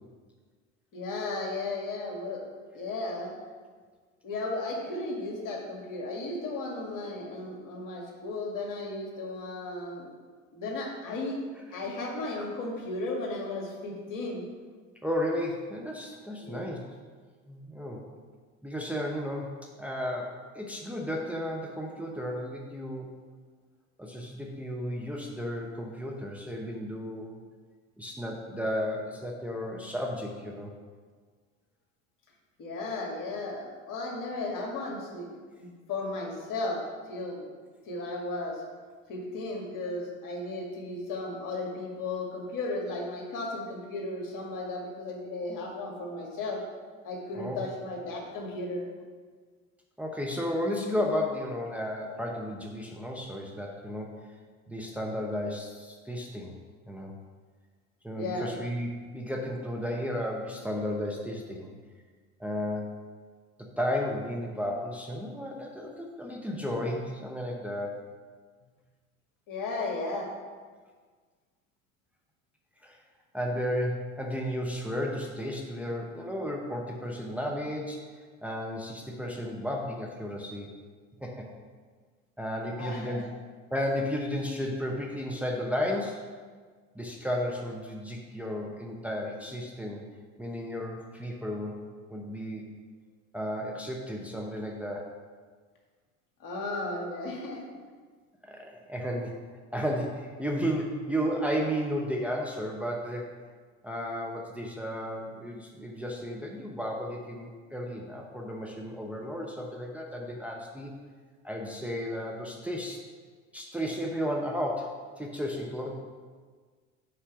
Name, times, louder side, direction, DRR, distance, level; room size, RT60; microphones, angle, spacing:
voice 1, 0.9-2.4 2.7-3.3 4.2-10.1 10.5-11.4 11.7-14.4 16.4-16.6 32.6-35.3 35.6-36.8 37.1-37.5 37.9-38.6 39.1-46.6 47.0-48.8 58.1-58.6 69.5-70.3 82.8-83.2 96.4-97.6, left 2 dB, 50° left, 0 dB, 2.0 m, -35 dB
voice 2, 15.0-16.8 17.5-18.0 18.6-23.1 24.0-27.4 28.0-30.7 47.3-47.6 50.0-54.3 54.7-56.5 56.9-57.1 58.0-61.7 62.4-63.0 63.6-68.0 72.8-73.0 73.3-80.8 81.2-81.5 82.4-83.2 83.7-86.3 86.9-90.0 90.4-91.8 92.1-92.6 93.3-95.1 98.4-99.4 99.7-103.3 103.8-110.9 111.4-113.0 113.5-115.9, equal, 5° right, 0 dB, 0.9 m, -33 dB
6.0 x 4.8 x 5.9 m, 1.5 s
hypercardioid pair, 70°, 40 cm